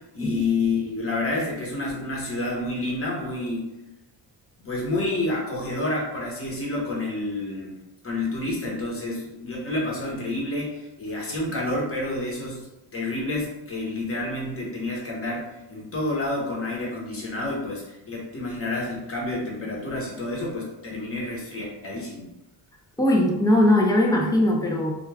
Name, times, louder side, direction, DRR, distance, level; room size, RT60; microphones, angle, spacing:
voice 1, 0.1-3.6 4.6-7.7 8.0-22.3, left 2 dB, 30° left, -4 dB, 0.9 m, -29 dB
voice 2, 23.0-24.9, left 1 dB, 10° left, -1 dB, 0.3 m, -20 dB
2.3 x 2.2 x 3.2 m, 0.95 s
cardioid pair, 120°, 45 cm